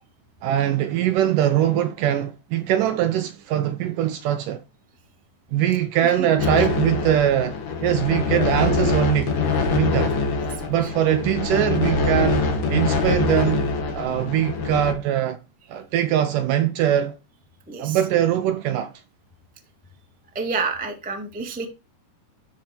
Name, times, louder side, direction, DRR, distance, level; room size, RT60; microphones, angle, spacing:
voice 1, 0.4-4.6 5.5-9.3 9.7-10.2 10.7-15.4 15.7-17.2 17.8-18.9, right 11 dB, 75° right, 2.0 m, -22 dB
sound 1, 6.4-14.9, left 3 dB, 45° left, 2.2 m, -24 dB
voice 2, 8.3-8.7 10.5-10.9 17.7-18.0 20.3-21.7, right 4 dB, 5° right, 0.6 m, -30 dB
12.5 x 4.7 x 4.4 m
omnidirectional pair, 4.4 m